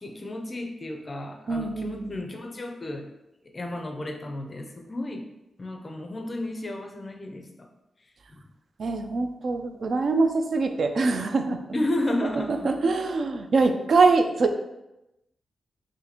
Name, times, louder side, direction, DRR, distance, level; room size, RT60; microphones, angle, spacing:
voice 1, 0.0-3.1 3.5-5.3 5.6-7.7 8.3-8.4 11.7-12.7, left 1 dB, 25° left, 3 dB, 0.4 m, -32 dB
voice 2, 1.5-2.2 8.8-11.6 12.5-14.5, right 3 dB, 55° right, 7 dB, 0.3 m, -23 dB
2.8 x 2.6 x 4.0 m, 0.92 s
wide cardioid pair, 150°, 0 cm